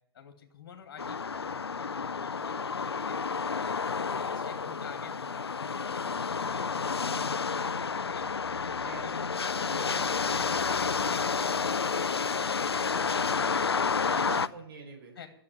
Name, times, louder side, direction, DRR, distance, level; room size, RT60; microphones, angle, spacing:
voice 1, 0.1-3.2 3.5-8.2 8.6-9.2 9.6-9.8 10.2-14.1 15.2-15.3, left 7 dB, 60° left, 6 dB, 2.3 m, -49 dB
sound 1, 1.0-14.5, left 5 dB, 90° left, 0.5 m, -30 dB
voice 2, 4.1-4.7 8.8-9.3 14.0-15.2, right 5 dB, 65° right, 2 dB, 4.8 m, -45 dB
12.0 x 7.4 x 9.7 m, 0.73 s
figure-of-eight pair, 115°, 13 cm